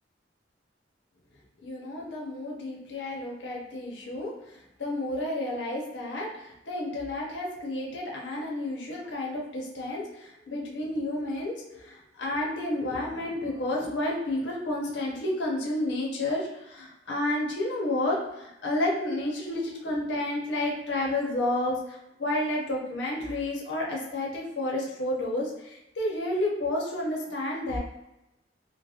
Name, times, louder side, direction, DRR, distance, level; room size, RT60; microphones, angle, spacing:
voice 1, 1.6-27.8, left 1 dB, 80° left, -2 dB, 0.7 m, -31 dB
2.4 x 2.1 x 2.7 m, 0.90 s
head